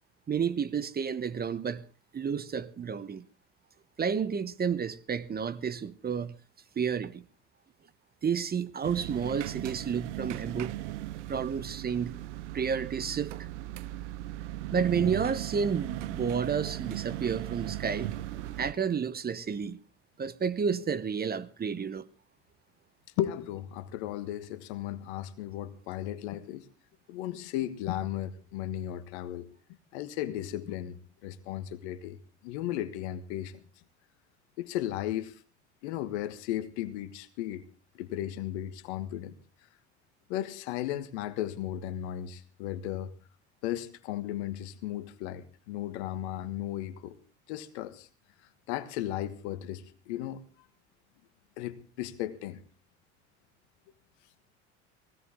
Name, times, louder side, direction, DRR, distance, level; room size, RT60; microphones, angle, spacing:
voice 1, 0.3-1.8 2.1-3.2 4.0-6.3 6.8-7.2 8.2-10.8 11.3-12.1 12.5-13.5 14.7-18.1 18.6-19.8 20.2-22.1, right 6 dB, 25° right, 1.0 m, -31 dB
sound 1, 8.8-18.7, right 14 dB, 80° right, 0.8 m, -37 dB
voice 2, 23.2-26.7 27.1-29.5 29.9-32.2 32.4-33.5 34.6-35.4 35.8-37.6 37.9-39.3 40.3-43.1 43.6-47.2 47.5-48.1 48.7-50.4 51.6-52.6, left 12 dB, 75° left, 1.4 m, -35 dB
19.0 x 16.5 x 3.6 m
hypercardioid pair, 75°, 35 cm